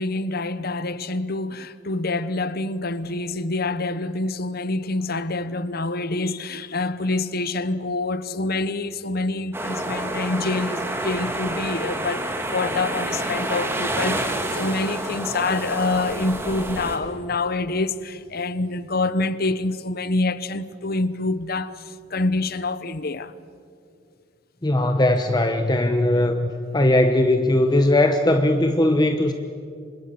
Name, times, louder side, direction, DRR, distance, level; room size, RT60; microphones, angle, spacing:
voice 1, 0.0-23.3, left 2 dB, 50° left, 1.0 m, -26 dB
sound 1, 9.5-17.0, right 1 dB, 10° right, 2.5 m, -28 dB
voice 2, 24.6-29.3, left 1 dB, 20° left, 1.0 m, -19 dB
29.0 x 26.0 x 7.0 m
head